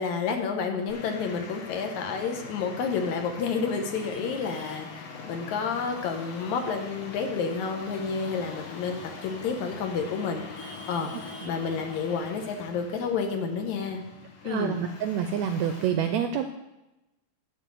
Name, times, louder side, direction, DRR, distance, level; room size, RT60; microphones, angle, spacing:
voice 1, 0.0-14.0 14.4-14.8, left 5 dB, 70° left, 4 dB, 2.2 m, -30 dB
Traffic noise roadway noise, 0.9-15.9, left 4 dB, 55° left, 1.7 m, -43 dB
voice 2, 11.1-11.5 14.4-16.5, right 8 dB, 80° right, 7 dB, 1.6 m, -28 dB
11.0 x 4.1 x 7.5 m, 0.97 s
omnidirectional pair, 3.6 m